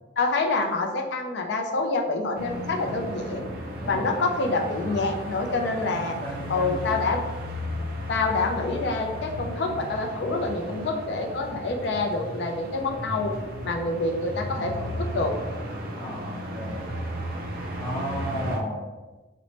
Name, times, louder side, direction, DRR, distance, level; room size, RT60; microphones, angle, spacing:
voice 1, 0.2-3.5 3.9-6.2 6.5-7.2 8.1-13.3 13.6-15.3, left 3 dB, 60° left, 2 dB, 0.4 m, -27 dB
sound 1, 2.3-18.6, equal, 50° right, 0.4 m, -35 dB
voice 2, 3.8-4.1 6.1-7.0 16.0-16.8 17.8-18.8, equal, 10° left, -10 dB, 1.0 m, -33 dB
2.8 x 2.0 x 2.9 m, 1.2 s
head